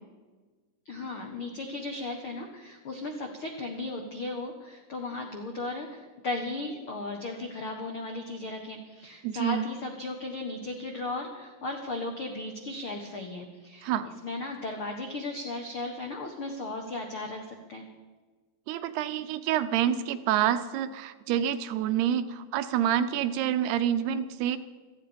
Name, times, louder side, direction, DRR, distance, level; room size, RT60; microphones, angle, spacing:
voice 1, 0.8-17.9, left 2 dB, 75° left, 2 dB, 1.2 m, -36 dB
voice 2, 9.2-9.6 13.8-14.1 18.7-24.6, right 10 dB, 80° right, 11 dB, 2.7 m, -27 dB
17.5 x 14.5 x 5.2 m, 1.3 s
omnidirectional pair, 4.7 m